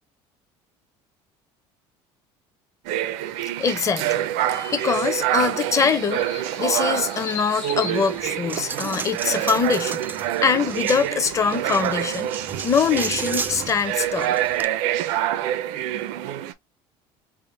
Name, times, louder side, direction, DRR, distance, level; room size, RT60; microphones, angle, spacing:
sound 1, 2.8-16.5, right 12 dB, 80° right, 0.5 m, -26 dB
voice 1, 3.6-14.3, left 6 dB, 25° left, 0.7 m, -24 dB
sound 2, 4.9-8.9, left 7 dB, 50° left, 1.3 m, -39 dB
Coin (dropping), 8.0-14.7, right 4 dB, 15° right, 0.3 m, -34 dB
3.6 x 2.1 x 3.8 m
cardioid pair, 130°, 12 cm